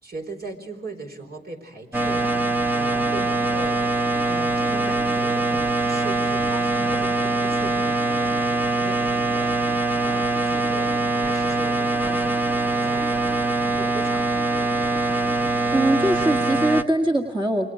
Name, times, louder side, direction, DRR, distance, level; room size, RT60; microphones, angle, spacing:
voice 1, 0.0-5.6 5.8-12.4 12.8-14.7, right 3 dB, 55° right, 3 dB, 4.4 m, -39 dB
sound 1, 1.9-16.8, right 2 dB, 10° right, 1.0 m, -23 dB
voice 2, 15.4-17.7, right 1 dB, 25° right, 1 dB, 1.8 m, -22 dB
28.5 x 24.5 x 5.1 m, 1.0 s
wide cardioid pair, 85°, 19 cm